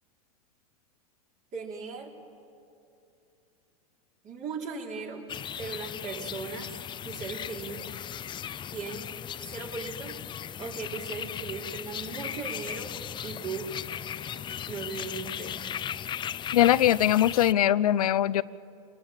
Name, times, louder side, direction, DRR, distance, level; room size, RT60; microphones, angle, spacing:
voice 1, 1.5-2.1 4.2-5.2 5.6-6.7 7.0-7.9 8.7-9.1 9.5-10.2 10.6-12.9 13.2-13.7 14.7-15.6, right 4 dB, 45° right, 0 dB, 4.4 m, -37 dB
sound 1, 5.3-17.5, left 9 dB, 25° left, 0.5 m, -37 dB
voice 2, 16.5-18.4, left 12 dB, 85° left, 17 dB, 0.6 m, -21 dB
28.0 x 20.0 x 8.8 m, 2.6 s
hypercardioid pair, 100°, 19 cm